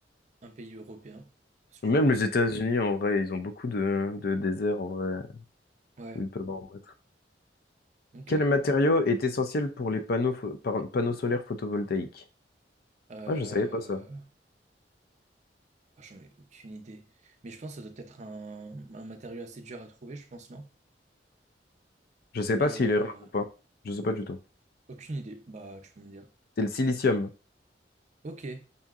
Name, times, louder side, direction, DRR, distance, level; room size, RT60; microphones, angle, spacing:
voice 1, 0.4-1.3 1.7-2.3 6.0-6.3 8.1-8.4 13.1-14.3 16.0-20.7 22.6-23.3 24.9-26.3 28.2-28.6, right 2 dB, 40° right, 0.5 m, -43 dB
voice 2, 1.8-5.2 6.2-6.8 8.3-12.2 13.3-14.0 22.3-23.4 23.8-24.4 26.6-27.3, left 2 dB, 60° left, 0.5 m, -27 dB
5.5 x 2.7 x 2.4 m
head